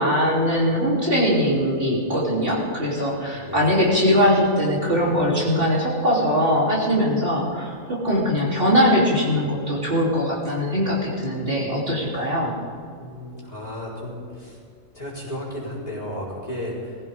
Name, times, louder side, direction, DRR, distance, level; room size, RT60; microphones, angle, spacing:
voice 1, 0.0-12.5, equal, 40° right, -6 dB, 3.8 m, -21 dB
voice 2, 3.3-3.7 13.0-14.6 14.9-17.0, left 1 dB, 25° left, -6 dB, 4.7 m, -33 dB
22.0 x 15.5 x 3.7 m, 2.2 s
omnidirectional pair, 1.5 m